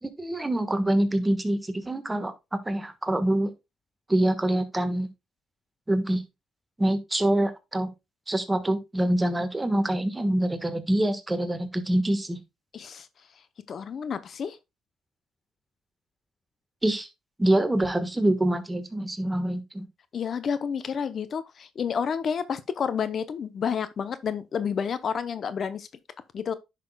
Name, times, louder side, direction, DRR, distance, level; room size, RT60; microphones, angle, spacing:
voice 1, 0.0-3.5 4.1-5.1 5.9-6.2 6.8-7.9 8.3-12.4 16.8-17.1 17.4-19.8, right 1 dB, 15° right, 1.3 m, -25 dB
voice 2, 12.7-13.1 13.7-14.6 20.1-25.9 26.3-26.5, left 7 dB, 55° left, 0.6 m, -30 dB
10.5 x 6.0 x 2.2 m
cardioid pair, 90°, 0 cm